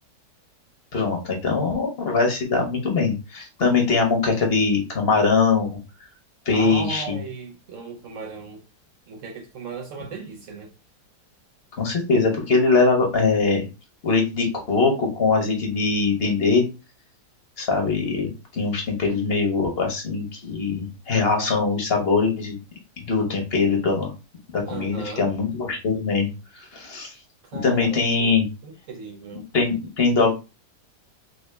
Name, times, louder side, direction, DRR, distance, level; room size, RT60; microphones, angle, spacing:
voice 1, 0.9-5.7 6.5-7.2 11.8-13.6 14.0-16.7 17.6-22.6 23.0-24.1 24.5-26.3 26.5-27.1 27.6-28.5 29.5-30.3, left 4 dB, 45° left, 0.9 m, -22 dB
voice 2, 6.5-8.6 9.1-10.7 24.7-25.3 27.5-28.4 28.6-29.4, right 4 dB, 65° right, 0.8 m, -36 dB
3.1 x 2.6 x 3.3 m
omnidirectional pair, 1.8 m